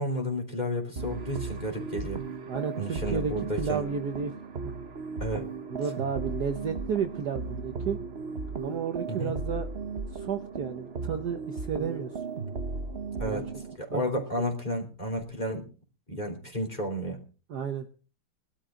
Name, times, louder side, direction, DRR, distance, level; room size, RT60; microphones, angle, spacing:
voice 1, 0.0-2.2 2.8-3.8 5.2-5.5 9.1-9.3 13.2-13.4 13.8-15.7 16.1-17.2, equal, 20° left, 2 dB, 3.5 m, -32 dB
sound 1, 1.0-13.8, right 4 dB, 40° right, 1.0 m, -36 dB
voice 2, 2.5-4.4 4.6-4.7 5.7-8.0 8.6-9.7 10.1-12.2 13.2-13.4 13.9-14.0 14.4-14.5 17.5-17.9, right 6 dB, 55° right, 6 dB, 1.4 m, -32 dB
20.5 x 12.5 x 3.8 m, 0.36 s
omnidirectional pair, 2.3 m